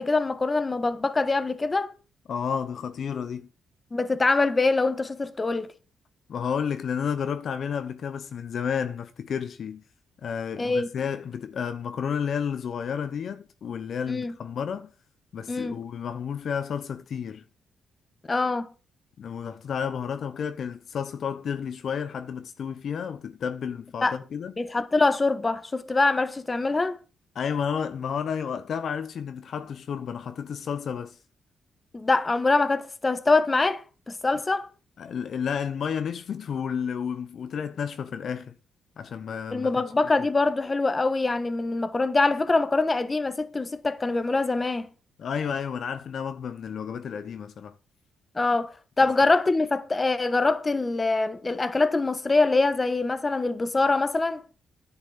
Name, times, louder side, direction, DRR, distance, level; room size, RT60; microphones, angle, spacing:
voice 1, 0.0-1.9 3.9-5.7 10.6-10.9 14.1-14.3 15.5-15.8 18.3-18.7 24.0-24.1 24.6-27.0 31.9-34.7 39.5-44.9 48.3-54.4, left 3 dB, 25° left, 1.2 m, -24 dB
voice 2, 2.3-3.5 6.3-9.8 10.2-14.9 15.3-17.4 19.2-24.5 27.3-31.2 35.0-38.6 39.0-39.8 40.2-40.3 45.2-47.7 49.0-49.1, left 7 dB, 60° left, 0.8 m, -31 dB
10.5 x 6.0 x 7.1 m
cardioid pair, 110°, 0 cm